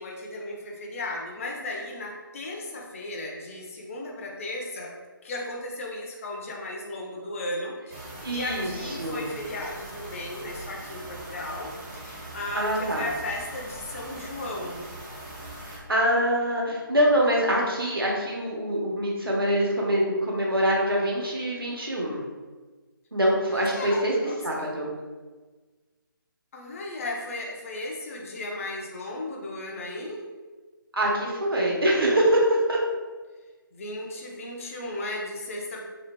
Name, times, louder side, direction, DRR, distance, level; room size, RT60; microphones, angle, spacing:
voice 1, 0.0-4.9 5.2-14.8 23.5-24.7 26.5-30.2 33.7-35.8, left 2 dB, 35° left, -1 dB, 0.6 m, -35 dB
sound 1, 7.9-15.8, right 1 dB, 20° right, 0.7 m, -41 dB
voice 2, 8.2-9.2 12.5-13.1 15.7-22.2 23.1-24.1 24.4-24.9 30.9-32.8, equal, 90° right, -3 dB, 1.1 m, -24 dB
3.9 x 3.1 x 2.2 m, 1.3 s
figure-of-eight pair, 150°, 12 cm